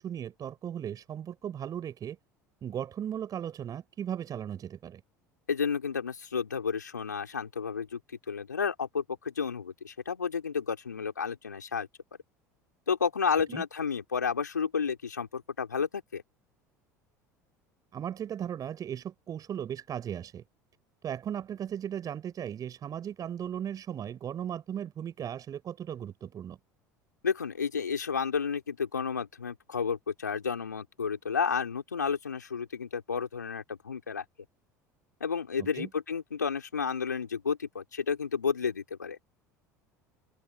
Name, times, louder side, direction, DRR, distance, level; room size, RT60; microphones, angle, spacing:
voice 1, 0.0-2.2 2.6-5.0 13.5-13.6 17.9-20.4 21.0-26.6 35.6-35.9, right 9 dB, 40° right, 5.7 m, -37 dB
voice 2, 5.5-8.0 8.3-11.9 12.9-16.2 27.2-34.2 35.2-39.2, left 6 dB, 90° left, 3.8 m, -31 dB
figure-of-eight pair, 70°, 9 cm